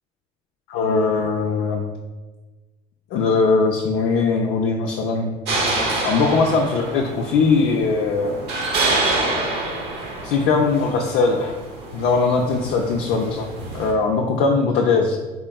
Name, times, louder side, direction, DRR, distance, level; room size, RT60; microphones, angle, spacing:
voice 1, 0.7-1.8 3.1-5.3 6.0-8.4 10.2-11.5 11.9-13.5 13.7-15.2, left 4 dB, 70° left, 1 dB, 0.4 m, -20 dB
sound 1, 5.5-13.9, right 2 dB, 65° right, 1.0 m, -27 dB
3.6 x 3.4 x 2.3 m, 1.3 s
supercardioid pair, 75°, 19 cm